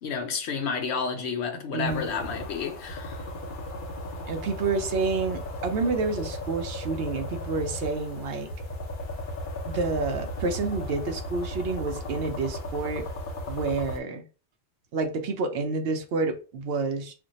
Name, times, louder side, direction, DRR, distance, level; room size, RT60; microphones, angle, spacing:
voice 1, 0.0-3.3, left 5 dB, 75° left, 0.9 m, -31 dB
voice 2, 1.7-2.1 4.3-8.5 9.7-13.1 13.5-14.2 14.9-17.1, right 4 dB, 70° right, 0.7 m, -29 dB
sound 1, 1.9-14.0, left 1 dB, 55° left, 0.7 m, -36 dB
2.5 x 2.1 x 4.0 m
omnidirectional pair, 1.1 m